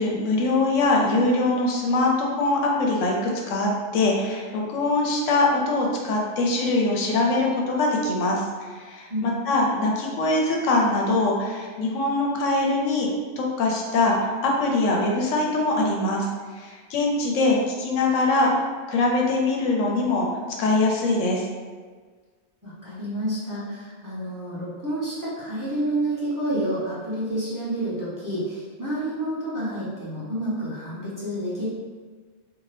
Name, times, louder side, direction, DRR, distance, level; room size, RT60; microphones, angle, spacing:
voice 1, 0.0-13.1 13.4-16.3 16.5-18.5 18.9-20.3 20.6-21.4, left 2 dB, 75° left, -1 dB, 0.9 m, -23 dB
voice 2, 22.6-31.7, right 1 dB, 20° right, -10 dB, 0.7 m, -29 dB
2.7 x 2.3 x 3.2 m, 1.5 s
omnidirectional pair, 1.4 m